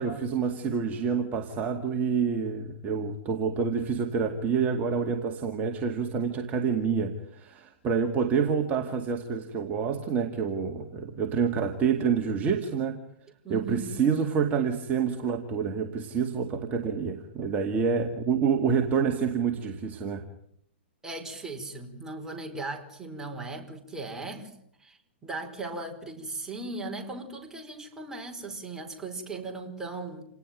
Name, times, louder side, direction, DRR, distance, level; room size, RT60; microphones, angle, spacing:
voice 1, 0.0-13.0 13.5-20.3, right 6 dB, 25° right, 4 dB, 2.3 m, -27 dB
voice 2, 13.4-14.0 21.0-24.5 24.8-30.3, right 3 dB, 10° right, 2 dB, 5.2 m, -38 dB
28.5 x 18.5 x 9.4 m, 0.72 s
hypercardioid pair, 135°, 6 cm